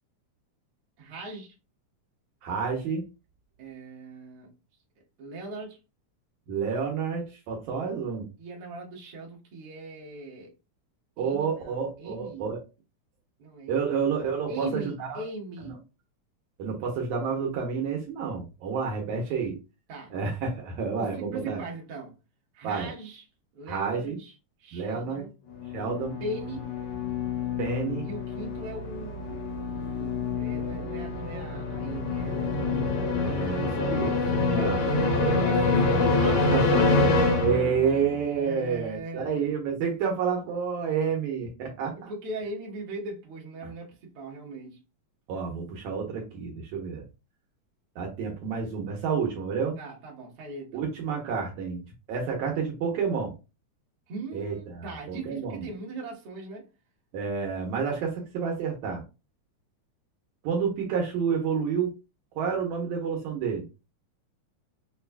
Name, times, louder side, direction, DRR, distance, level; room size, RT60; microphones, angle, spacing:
voice 1, 1.0-1.5 3.6-4.5 5.2-5.8 8.4-10.5 11.2-12.5 13.4-13.9 14.5-15.8 19.9-20.1 21.0-22.2 22.5-23.3 23.5-25.3 26.2-26.7 28.0-33.2 34.1-36.8 38.3-39.5 41.9-44.8 49.8-50.8 54.1-56.7, right 2 dB, 55° right, 1.8 m, -40 dB
voice 2, 2.4-3.0 6.5-8.2 11.2-12.6 13.7-15.2 16.6-19.6 20.1-21.6 22.6-22.9 23.7-24.2 24.7-25.2 25.7-26.2 27.6-28.1 33.2-34.8 36.5-36.9 37.4-42.1 43.6-43.7 45.3-47.0 48.0-49.8 50.7-51.8 52.1-53.3 54.3-55.6 57.1-59.0 60.4-61.9 62.3-63.6, right 6 dB, 75° right, 2.1 m, -29 dB
sound 1, 25.5-38.1, left 3 dB, 80° left, 1.2 m, -26 dB
6.1 x 2.4 x 2.2 m
omnidirectional pair, 3.5 m